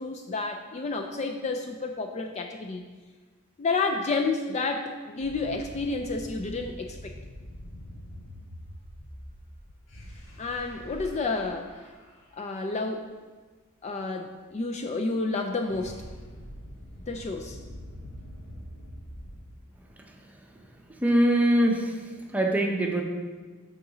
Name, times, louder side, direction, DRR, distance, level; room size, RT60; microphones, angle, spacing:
voice 1, 0.0-2.8 3.6-7.1 10.4-11.7 12.4-13.1 13.8-16.0 17.1-17.6, left 3 dB, 30° left, 4 dB, 0.3 m, -30 dB
sound 1, 5.2-12.3 15.2-19.6, equal, 60° left, 2.3 m, -44 dB
voice 2, 21.0-23.0, right 1 dB, 5° right, 1 dB, 0.7 m, -23 dB
6.6 x 3.9 x 6.0 m, 1.4 s
head